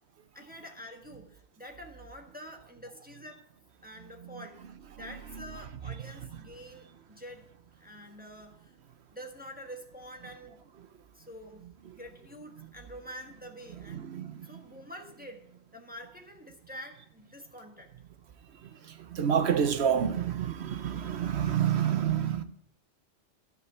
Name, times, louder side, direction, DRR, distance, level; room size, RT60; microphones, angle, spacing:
voice 1, 0.3-3.4 3.8-4.6 5.0-7.5 7.8-8.7 9.1-10.6 11.1-14.2 14.4-15.4 15.7-17.9, equal, 10° right, 1.3 m, -47 dB
voice 2, 4.0-4.4 5.9-6.1 11.9-12.0 12.6-12.7 13.7-14.6 18.6-22.4, right 8 dB, 70° right, 1.0 m, -29 dB
12.5 x 5.3 x 8.6 m
omnidirectional pair, 1.2 m